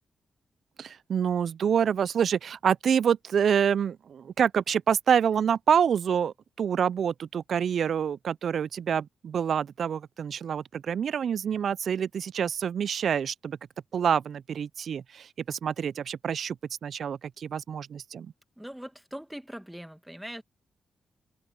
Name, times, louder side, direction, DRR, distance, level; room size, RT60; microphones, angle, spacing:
voice 1, 0.8-13.6 13.9-16.6 16.8-18.3, right 8 dB, 70° right, 0.3 m, -27 dB
voice 2, 18.6-20.4, equal, 5° right, 2.0 m, -41 dB
supercardioid pair, 50°, 0 cm